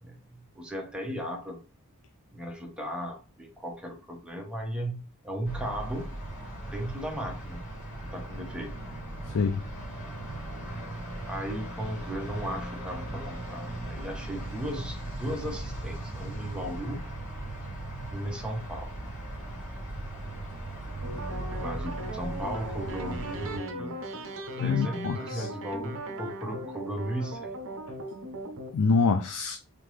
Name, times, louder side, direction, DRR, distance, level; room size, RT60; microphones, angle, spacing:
voice 1, 0.0-1.6 2.3-6.1 6.7-7.7 8.1-8.7 11.3-17.1 18.1-18.9 21.5-24.1 24.6-27.5, equal, 5° right, 1.0 m, -36 dB
sound 1, 5.4-23.6, right 1 dB, 60° left, 2.4 m, -38 dB
voice 2, 9.3-9.6 24.6-25.5 28.7-29.6, left 4 dB, 80° left, 0.4 m, -26 dB
sound 2, 21.0-28.7, right 1 dB, 60° right, 0.7 m, -38 dB
3.6 x 3.6 x 3.2 m
head